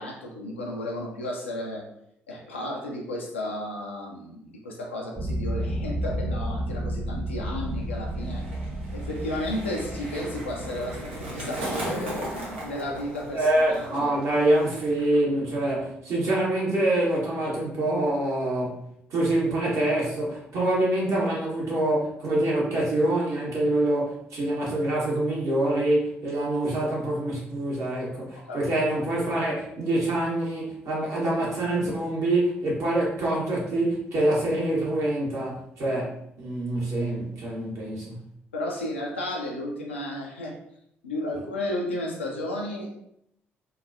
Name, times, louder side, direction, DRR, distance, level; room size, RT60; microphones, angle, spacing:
voice 1, 0.0-1.9 2.3-8.4 8.9-14.1 28.4-28.6 38.5-40.6 41.0-42.9, left 1 dB, 85° left, -1 dB, 0.4 m, -33 dB
sound 1, 5.2-13.6, equal, 35° right, 0.8 m, -33 dB
Skateboard, 7.6-15.2 15.4-15.9, right 1 dB, 80° right, 0.5 m, -37 dB
voice 2, 13.3-18.8 19.1-38.2, right 1 dB, 55° right, -5 dB, 1.0 m, -25 dB
2.8 x 2.2 x 2.4 m, 0.75 s
figure-of-eight pair, 45°, 6 cm